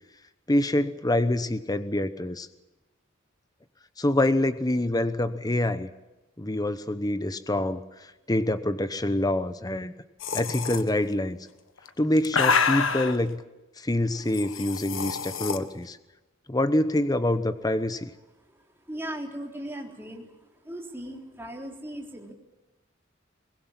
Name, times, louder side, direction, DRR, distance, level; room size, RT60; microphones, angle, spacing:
voice 1, 0.5-2.5 4.0-5.9 6.4-7.8 8.3-9.9 10.3-11.4 12.0-13.4 13.8-16.0 16.5-18.1, left 1 dB, 20° left, 11 dB, 1.0 m, -26 dB
sound 1, 10.2-10.8 11.8-13.2 14.3-15.6, left 5 dB, 80° left, 1.5 m, -27 dB
voice 2, 18.9-20.3 20.6-22.3, right 1 dB, 10° right, 1 dB, 3.7 m, -37 dB
23.0 x 20.5 x 7.4 m, 1.1 s
head